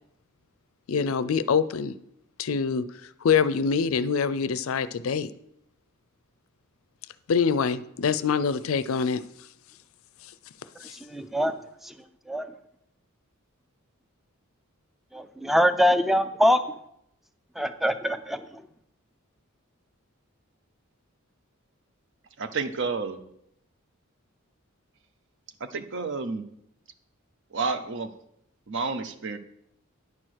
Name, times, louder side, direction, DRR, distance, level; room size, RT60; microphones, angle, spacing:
voice 1, 0.9-1.9 2.4-2.8 3.2-5.3 7.3-9.2 10.8-10.9, left 6 dB, 70° left, 0.4 m, -25 dB
voice 2, 11.1-11.6 11.8-11.9 12.3-12.5 15.1-16.6 17.6-18.4, equal, ahead, 0.4 m, -23 dB
voice 3, 22.4-23.2 25.7-26.5 27.5-28.1 28.7-29.4, right 4 dB, 60° right, 0.7 m, -30 dB
9.7 x 4.5 x 6.3 m
head